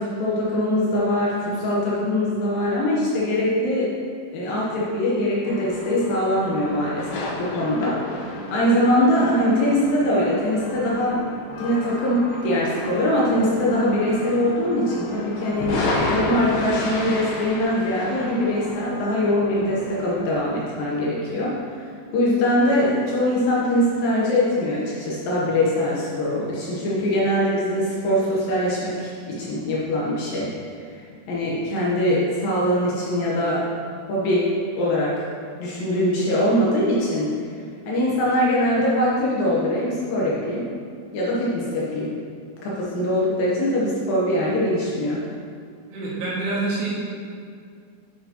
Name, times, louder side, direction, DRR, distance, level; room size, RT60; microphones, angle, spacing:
voice 1, 0.0-3.9 4.3-8.0 8.5-11.2 11.6-21.6 22.1-30.5 31.3-33.7 34.1-34.5 34.8-35.3 35.6-37.3 37.9-40.7 41.1-42.1 42.6-45.2, left 1 dB, 70° left, -5 dB, 2.4 m, -22 dB
sound 1, 5.4-20.4, left 2 dB, 85° left, 3.2 m, -32 dB
voice 2, 45.9-46.9, right 2 dB, 75° right, -7 dB, 3.8 m, -26 dB
8.3 x 7.6 x 2.9 m, 2.3 s
omnidirectional pair, 4.8 m